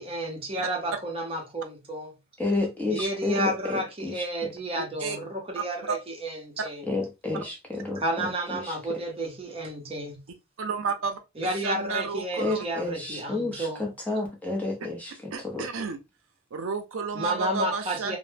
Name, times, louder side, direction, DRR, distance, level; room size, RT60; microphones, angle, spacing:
voice 1, 0.0-2.1 2.9-6.8 7.9-10.2 11.4-13.9 17.1-18.2, right 1 dB, 25° right, 0.7 m, -31 dB
voice 2, 2.4-4.2 6.9-8.0 8.5-8.7 12.4-15.7, left 2 dB, 10° left, 0.6 m, -30 dB
voice 3, 4.8-5.2 5.6-6.0 10.6-11.2 11.6-12.6 15.3-16.0 16.5-18.2, right 5 dB, 75° right, 0.5 m, -31 dB
2.0 x 2.0 x 3.2 m
head